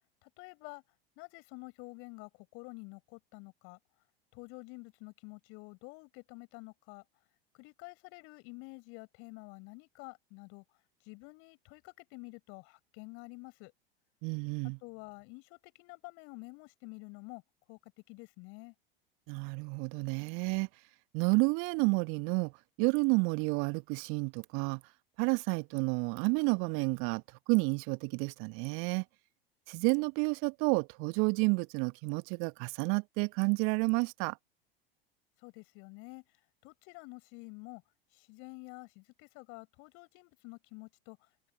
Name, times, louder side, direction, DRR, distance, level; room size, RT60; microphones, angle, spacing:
voice 1, 0.2-0.8 1.2-3.8 4.3-7.0 7.5-10.6 11.0-13.7 14.8-17.4 17.7-17.8 18.1-18.7 35.4-36.2 36.6-37.8 38.1-41.3, left 30 dB, 45° left, 5.4 m, -49 dB
voice 2, 14.2-14.8 19.3-20.7 21.1-22.5 22.8-24.8 25.2-29.0 29.7-34.4, right 34 dB, 45° right, 1.4 m, -30 dB
figure-of-eight pair, 85°, 29 cm